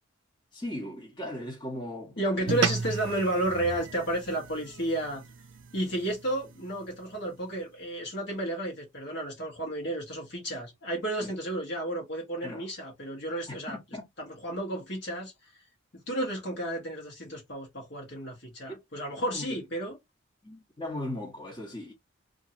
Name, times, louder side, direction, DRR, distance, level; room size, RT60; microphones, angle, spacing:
voice 1, 0.5-2.6 11.2-11.3 12.4-12.7 13.5-14.1 18.7-18.8 19.3-19.6 20.4-21.9, left 1 dB, 20° left, 1.0 m, -38 dB
voice 2, 2.2-5.2 5.7-13.8 14.3-15.3 15.9-20.0, right 1 dB, 55° left, 1.2 m, -32 dB
sound 1, 2.5-7.1, right 6 dB, 65° right, 0.4 m, -35 dB
2.7 x 2.6 x 2.7 m
head